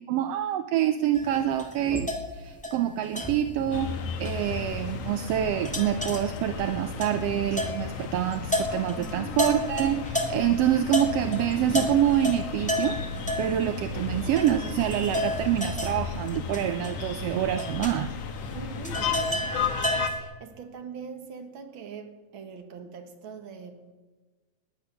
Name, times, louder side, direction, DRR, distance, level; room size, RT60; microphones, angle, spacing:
voice 1, 0.0-3.9 4.2-13.0 13.4-18.1, right 11 dB, 75° right, 1.5 m, -26 dB
sound 1, 1.1-10.5 10.9-20.2, left 1 dB, 5° left, 1.4 m, -32 dB
sound 2, 3.7-20.1, left 6 dB, 60° left, 2.2 m, -34 dB
voice 2, 8.9-9.5 18.5-23.9, right 5 dB, 50° right, 2.0 m, -42 dB
19.0 x 10.5 x 6.9 m
omnidirectional pair, 3.4 m